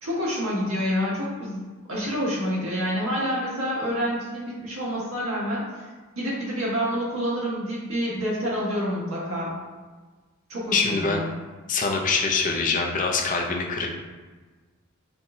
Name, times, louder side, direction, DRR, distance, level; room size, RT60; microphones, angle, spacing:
voice 1, 0.0-5.7 6.2-9.5 10.5-11.3, equal, 90° right, -6 dB, 1.4 m, -28 dB
voice 2, 10.7-11.2 11.7-13.9, left 4 dB, 40° left, 1 dB, 0.5 m, -24 dB
5.5 x 2.6 x 2.3 m, 1.3 s
head